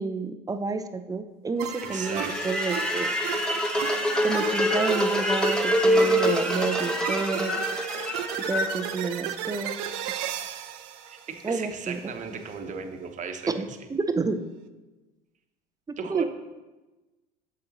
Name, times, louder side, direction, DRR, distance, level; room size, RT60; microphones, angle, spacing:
voice 1, 0.0-3.1 4.2-7.6 8.5-9.7 11.4-12.0 13.5-14.4 16.1-16.2, right 4 dB, 15° right, 8 dB, 0.5 m, -30 dB
sound 1, 1.6-12.0, right 11 dB, 70° right, 0.6 m, -35 dB
sound 2, 1.7-9.8, equal, 5° left, 1.1 m, -26 dB
voice 2, 1.8-2.5 11.0-13.5 16.0-16.2, right 6 dB, 35° right, 5 dB, 1.0 m, -35 dB
8.7 x 7.5 x 3.0 m, 1.1 s
hypercardioid pair, 85°, 21 cm